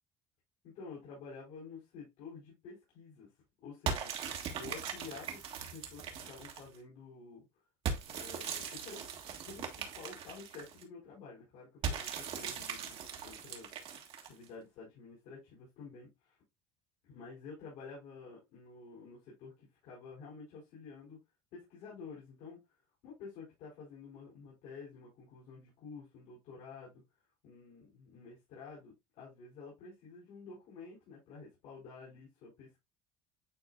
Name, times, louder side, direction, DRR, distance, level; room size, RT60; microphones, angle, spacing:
voice 1, 0.6-3.3 3.6-4.1 4.5-5.4 5.7-7.5 8.1-9.0 9.5-13.0 13.2-13.7 14.2-16.4 17.1-19.5 19.8-21.2 21.5-22.6 23.0-27.0 27.4-32.8, left 5 dB, 70° left, 4.2 m, -50 dB
sound 1, 3.9-6.8 7.9-10.8 11.8-14.5, right 6 dB, 50° right, 1.7 m, -40 dB
10.0 x 3.9 x 2.4 m
cardioid pair, 130°, 12 cm